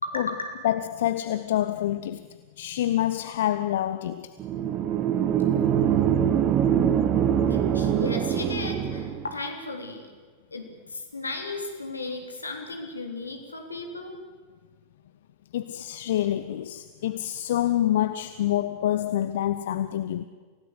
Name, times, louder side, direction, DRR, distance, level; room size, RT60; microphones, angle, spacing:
voice 1, 0.0-0.5 7.5-10.1 10.5-14.2, left 2 dB, 80° left, 3.5 m, -35 dB
voice 2, 0.6-2.3 2.6-4.4 15.5-20.3, left 12 dB, 55° left, 0.7 m, -27 dB
sound 1, 4.4-9.3, right 9 dB, 35° right, 1.2 m, -23 dB
28.0 x 17.0 x 8.2 m
figure-of-eight pair, 90°, 0 cm